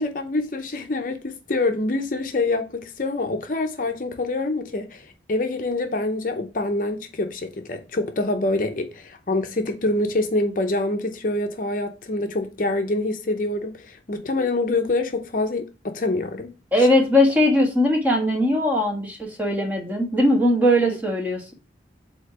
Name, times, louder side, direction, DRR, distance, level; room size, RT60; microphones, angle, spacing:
voice 1, 0.0-16.5 16.8-16.9 20.8-21.0, left 2 dB, 45° left, 0.6 m, -26 dB
voice 2, 16.7-21.5, left 1 dB, 10° right, 1.3 m, -20 dB
8.2 x 2.9 x 4.7 m
head